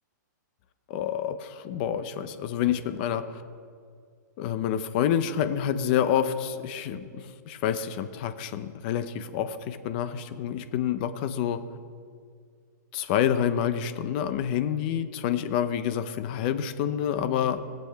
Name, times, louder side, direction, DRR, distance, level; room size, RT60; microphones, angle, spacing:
voice 1, 0.9-3.4 4.4-11.6 12.9-17.6, left 9 dB, 30° left, 11 dB, 0.6 m, -28 dB
19.5 x 7.7 x 3.4 m, 2.2 s
hypercardioid pair, 165°, 10 cm